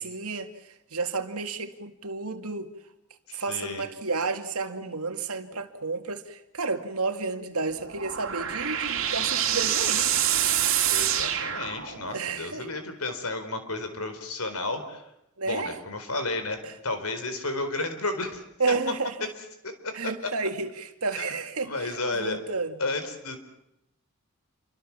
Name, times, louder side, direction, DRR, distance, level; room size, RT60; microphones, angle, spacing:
voice 1, 0.0-2.7 3.3-10.1 12.1-12.7 15.4-15.8 16.6-16.7 18.6-19.3 19.9-22.8, right 4 dB, 85° right, 2.2 m, -31 dB
voice 2, 3.3-3.9 10.9-15.0 15.5-16.6 16.8-18.7 19.2-19.3 19.6-19.9 21.2-21.3 21.6-22.4 22.8-23.4, left 2 dB, 85° left, 4.4 m, -32 dB
sound 1, 7.7-12.2, right 10 dB, 60° right, 3.1 m, -26 dB
28.5 x 24.5 x 7.3 m
head